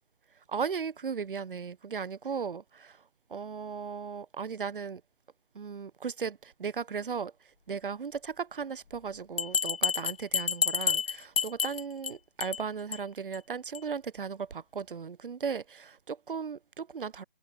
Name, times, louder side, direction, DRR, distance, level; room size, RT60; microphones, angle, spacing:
voice 1, 0.5-3.0 3.3-5.0 5.5-7.3 7.7-17.2, right 6 dB, 60° right, 1.3 m, -36 dB
Bell, 9.4-12.1 12.4-12.6 12.9-13.0 13.3-13.4 13.7-13.8, left 6 dB, 75° left, 0.8 m, -29 dB
figure-of-eight pair, 160°, 30 cm